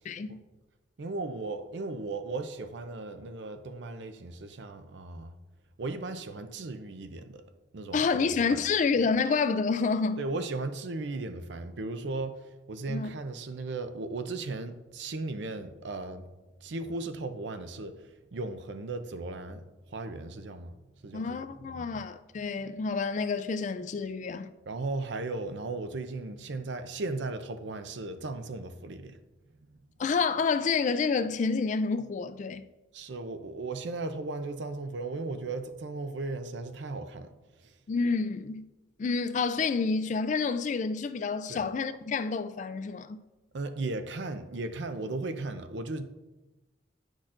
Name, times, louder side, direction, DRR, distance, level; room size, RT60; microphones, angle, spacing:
voice 1, 0.1-0.4 7.9-10.2 12.9-13.1 21.1-24.5 30.0-32.7 37.9-38.6 39.0-43.2, left 4 dB, 40° left, 0.3 m, -28 dB
voice 2, 1.0-5.3 5.8-7.4 7.7-8.6 10.2-16.3 16.6-20.8 21.0-22.0 24.7-29.2 32.9-37.3 37.6-37.7 41.5-41.7 43.5-46.1, right 3 dB, 70° right, 0.5 m, -36 dB
10.0 x 6.3 x 2.5 m
head